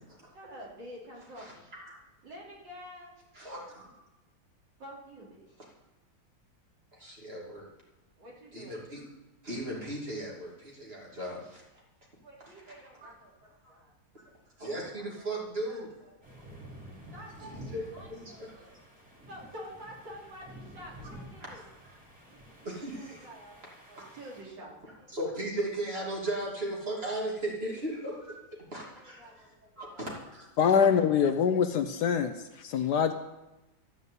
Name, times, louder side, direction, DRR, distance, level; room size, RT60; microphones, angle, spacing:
voice 1, 0.3-1.7 2.2-3.2 4.8-5.5 8.2-9.0 12.2-13.9 14.9-15.3 15.6-16.4 17.1-18.8 19.3-21.6 22.3-23.6 23.9-25.1 28.8-30.2, equal, 75° right, -4 dB, 3.8 m, -49 dB
voice 2, 1.4-2.0 3.3-3.9 6.9-7.7 8.5-9.0 9.4-11.6 13.0-13.1 14.6-15.9 17.4-18.7 21.4-21.6 22.6-23.3 24.0-24.1 25.1-28.3 28.7-29.4 29.8-30.5, right 1 dB, 30° right, -3 dB, 3.0 m, -37 dB
sound 1, 16.2-24.4, equal, 5° right, 3.8 m, -50 dB
voice 3, 30.6-33.1, left 7 dB, 70° left, 9 dB, 1.1 m, -24 dB
13.5 x 5.4 x 8.2 m, 1.0 s
omnidirectional pair, 2.0 m